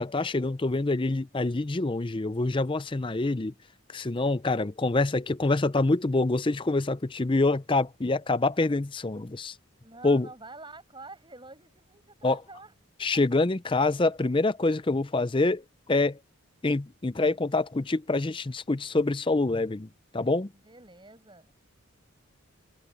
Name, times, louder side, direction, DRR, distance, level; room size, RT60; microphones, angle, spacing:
voice 1, 0.0-3.5 3.9-9.5 10.0-10.3 12.2-12.4 13.0-15.6 15.9-16.2 16.6-20.5, left 2 dB, 25° left, 0.5 m, -26 dB
voice 2, 9.8-12.7 13.0-13.1 20.6-21.5, right 3 dB, 20° right, 7.6 m, -47 dB
head